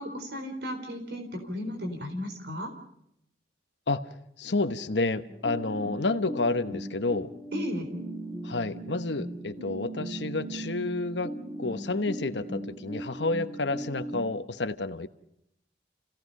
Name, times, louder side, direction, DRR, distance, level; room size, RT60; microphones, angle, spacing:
voice 1, 0.0-2.7 7.5-7.9, equal, 65° right, 5 dB, 4.1 m, -34 dB
voice 2, 4.4-7.3 8.4-11.3 11.6-15.1, left 3 dB, 80° left, 10 dB, 1.1 m, -30 dB
sound 1, 5.3-14.3, right 1 dB, 35° right, 4.4 m, -38 dB
29.0 x 17.0 x 5.4 m, 0.77 s
head